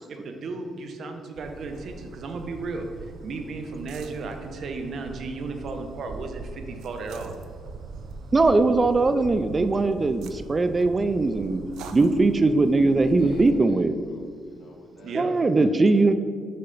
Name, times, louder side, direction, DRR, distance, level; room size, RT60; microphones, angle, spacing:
voice 1, 0.1-2.9 3.2-7.4 15.0-15.3, right 3 dB, 60° right, 5 dB, 0.8 m, -34 dB
sound 1, 1.4-13.5, right 4 dB, 85° right, 0.5 m, -41 dB
voice 2, 8.3-11.6 11.9-14.0 15.1-16.1, right 3 dB, 30° right, 10 dB, 0.3 m, -20 dB
voice 3, 13.0-15.4, left 1 dB, 65° left, 0 dB, 1.2 m, -47 dB
6.8 x 5.4 x 3.9 m, 2.2 s
cardioid pair, 90°, 0 cm